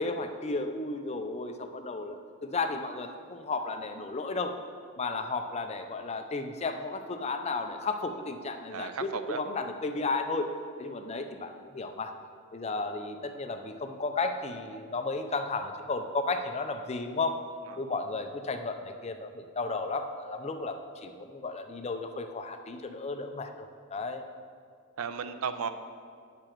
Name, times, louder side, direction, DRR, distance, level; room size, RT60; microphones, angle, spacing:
voice 1, 0.0-4.5 5.0-10.5 10.8-12.1 12.5-17.3 17.8-24.2, left 3 dB, 30° left, 6 dB, 0.5 m, -33 dB
voice 2, 8.7-9.4 17.7-17.9 25.0-25.7, right 6 dB, 75° right, 10 dB, 0.5 m, -35 dB
8.7 x 6.8 x 4.5 m, 2.1 s
head